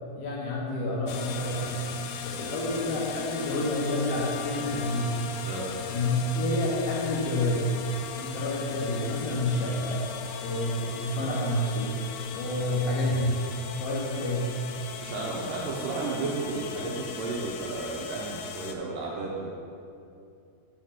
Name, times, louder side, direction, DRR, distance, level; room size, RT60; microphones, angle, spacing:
voice 1, 0.2-1.8 2.2-5.1 5.9-7.7 8.2-10.0 10.4-11.9 12.3-13.4 13.8-14.5, left 1 dB, 70° left, -4 dB, 2.1 m, -28 dB
sound 1, 1.1-18.7, left 7 dB, 85° left, 2.2 m, -39 dB
voice 2, 15.0-19.5, right 3 dB, 80° right, -3 dB, 2.0 m, -33 dB
7.6 x 5.7 x 5.9 m, 2.5 s
omnidirectional pair, 4.9 m